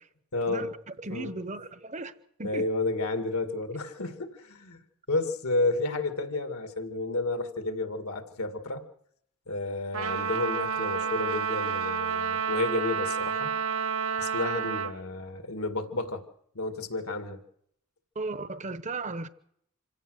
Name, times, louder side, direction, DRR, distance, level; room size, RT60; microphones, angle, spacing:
voice 1, 0.3-0.7 1.1-1.3 2.4-4.8 5.1-8.8 9.5-13.5 14.2-16.2 16.5-17.4, left 2 dB, 75° left, 2.2 m, -31 dB
voice 2, 1.0-2.1 2.4-2.7 18.1-19.3, right 3 dB, 30° right, 0.9 m, -35 dB
Trumpet, 9.9-15.0, right 6 dB, 70° right, 1.2 m, -30 dB
26.5 x 16.5 x 6.5 m
head